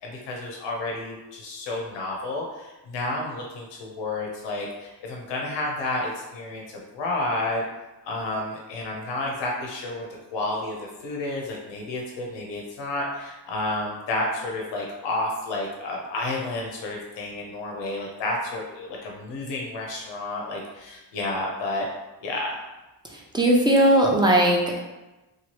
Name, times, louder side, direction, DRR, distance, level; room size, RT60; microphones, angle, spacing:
voice 1, 0.0-7.6 8.1-10.0 10.3-10.8 11.0-21.9 22.2-22.5, left 2 dB, 85° left, -1 dB, 0.7 m, -30 dB
voice 2, 23.3-24.8, right 1 dB, 10° right, -2 dB, 0.5 m, -18 dB
3.1 x 2.3 x 2.8 m, 1.1 s
cardioid pair, 100°, 42 cm